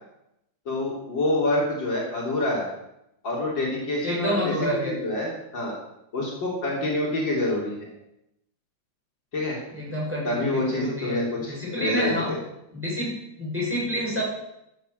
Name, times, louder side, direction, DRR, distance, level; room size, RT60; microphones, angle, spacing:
voice 1, 0.7-2.7 3.2-5.8 6.1-7.9 9.3-9.6 10.2-12.4, left 2 dB, 55° left, -3 dB, 4.0 m, -27 dB
voice 2, 4.0-4.9 9.7-11.2 11.5-12.3 12.7-14.2, equal, 5° right, -5 dB, 6.5 m, -28 dB
12.5 x 9.1 x 8.0 m, 0.83 s
omnidirectional pair, 2.4 m